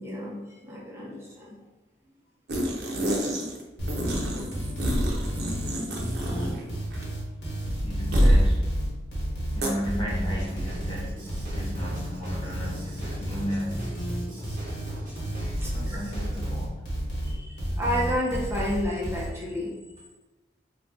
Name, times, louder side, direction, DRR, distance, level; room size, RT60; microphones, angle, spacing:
voice 1, 0.0-1.6 15.6-16.0 17.2-19.7, equal, 15° right, -6 dB, 0.6 m, -31 dB
sound 1, 2.5-3.6 3.9-6.7 6.9-7.1 8.1-8.5 9.6-9.7, equal, 70° right, 0.6 m, -25 dB
sound 2, 3.8-19.3, equal, 85° left, 1.2 m, -31 dB
voice 2, 6.0-6.9 7.8-8.8 9.5-14.0 15.7-16.9, equal, 25° left, -4 dB, 0.7 m, -35 dB
Drum kit / Drum, 10.3-16.5, equal, 50° right, 1.0 m, -41 dB
2.5 x 2.2 x 3.6 m, 1.1 s
head